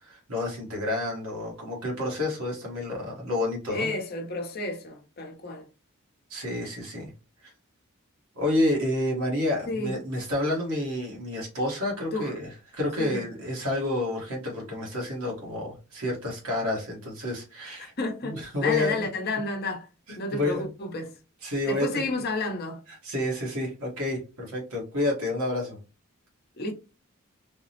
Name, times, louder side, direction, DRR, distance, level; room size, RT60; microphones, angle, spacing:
voice 1, 0.0-3.9 6.3-7.1 7.4-7.5 8.3-17.9 18.2-19.1 20.1-20.7 21.4-22.2 22.9-25.8, left 1 dB, 75° right, 1.1 m, -29 dB
voice 2, 3.7-5.7 9.7-9.9 12.1-12.4 13.0-13.2 17.8-19.9 20.2-21.1 21.7-22.8 26.6-26.7, left 2 dB, 45° left, 0.7 m, -31 dB
3.4 x 2.0 x 2.7 m
head